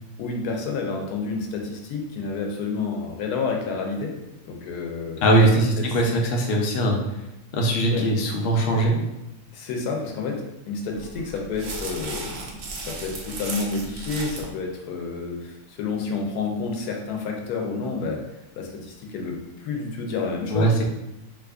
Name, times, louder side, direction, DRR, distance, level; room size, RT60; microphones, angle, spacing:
voice 1, 0.2-4.1 4.4-5.2 5.8-6.0 7.8-8.1 9.5-18.2 18.5-20.7, left 4 dB, 90° left, 1 dB, 1.1 m, -30 dB
voice 2, 5.2-7.0 7.5-9.0 20.5-20.9, right 1 dB, 60° left, 0 dB, 0.6 m, -20 dB
sound 1, 10.9-14.5, right 3 dB, 65° right, 0.5 m, -35 dB
2.9 x 2.4 x 3.5 m, 0.92 s
omnidirectional pair, 1.6 m